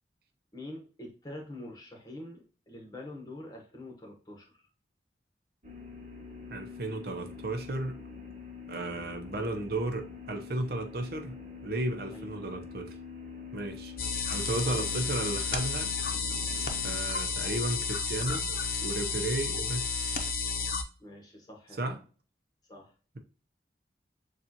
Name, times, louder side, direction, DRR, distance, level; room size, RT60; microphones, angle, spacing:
voice 1, 0.5-4.5 12.1-12.3 14.7-14.9 21.0-22.0 22.7-22.9, left 1 dB, 20° left, 1.2 m, -45 dB
sound 1, 5.6-17.0, left 5 dB, 40° right, 1.1 m, -45 dB
voice 2, 6.5-8.0 8.7-13.0 13.5-13.9 14.3-15.9 16.8-18.5 18.8-20.0 21.8-22.0, right 2 dB, 55° right, 0.7 m, -34 dB
sound 2, 14.0-20.8, left 5 dB, 55° left, 0.7 m, -32 dB
7.0 x 2.5 x 2.8 m
head